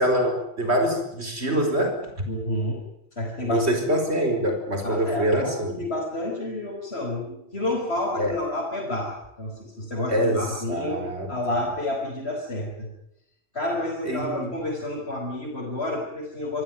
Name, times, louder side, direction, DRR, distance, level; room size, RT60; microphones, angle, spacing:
voice 1, 0.0-2.1 3.5-5.8 8.2-8.4 10.1-11.3 14.1-14.5, equal, 85° right, 5 dB, 5.2 m, -25 dB
voice 2, 2.3-2.8 3.2-3.7 4.8-12.9 13.5-16.6, left 1 dB, 75° left, -3 dB, 5.8 m, -30 dB
27.0 x 15.5 x 9.4 m, 0.79 s
omnidirectional pair, 1.1 m